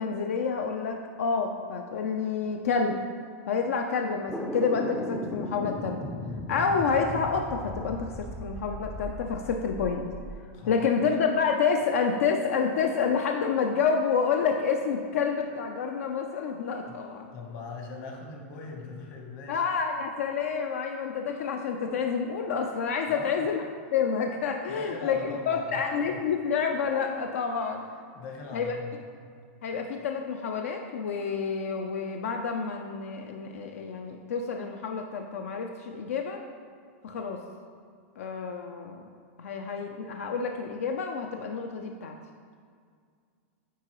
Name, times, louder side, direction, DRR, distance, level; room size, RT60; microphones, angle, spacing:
voice 1, 0.0-3.0 3.5-6.0 6.5-10.0 10.7-17.3 19.5-23.6 23.9-27.8 28.5-28.8 29.6-36.4 37.0-37.4 38.2-39.0 39.4-42.2, left 5 dB, 85° left, 3 dB, 0.4 m, -28 dB
sound 1, 4.3-10.4, left 1 dB, 5° left, 0.3 m, -37 dB
voice 2, 10.5-11.1 16.9-17.0 17.3-19.6 23.1-23.3 24.7-26.2 28.1-29.0, left 3 dB, 45° left, 1 dB, 1.1 m, -40 dB
9.2 x 3.9 x 3.0 m, 2.1 s
supercardioid pair, 145°, 7 cm